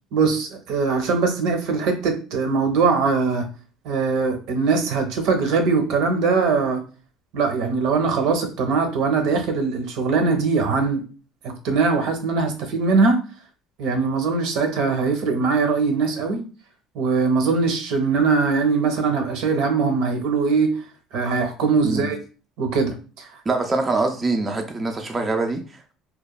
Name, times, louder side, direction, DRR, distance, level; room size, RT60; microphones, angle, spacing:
voice 1, 0.1-3.4 3.8-6.8 7.3-11.0 11.4-13.2 13.8-16.4 16.9-20.7 21.1-22.2 22.6-23.3, right 4 dB, 75° right, 6 dB, 0.6 m, -21 dB
voice 2, 23.5-25.9, right 3 dB, 20° right, 4 dB, 0.3 m, -24 dB
2.9 x 2.1 x 2.3 m, 0.36 s
cardioid pair, 125°, 0 cm